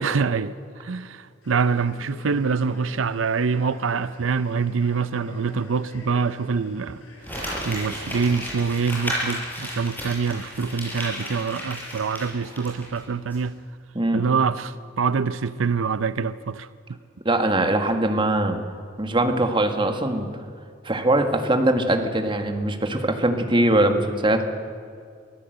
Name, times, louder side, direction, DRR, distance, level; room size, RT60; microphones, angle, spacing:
voice 1, 0.0-7.0 7.3-13.6 14.1-17.0, right 5 dB, 90° right, 0.6 m, -25 dB
Male speech man speaking, 1.4-8.7, equal, 80° left, 7.0 m, -46 dB
Crumpling crinkling, 7.2-13.0 13.3-13.4, equal, 10° left, 6.9 m, -33 dB
voice 2, 17.2-18.6 19.0-20.3 20.8-24.4, right 1 dB, 25° right, 1.8 m, -21 dB
24.5 x 15.5 x 8.0 m
head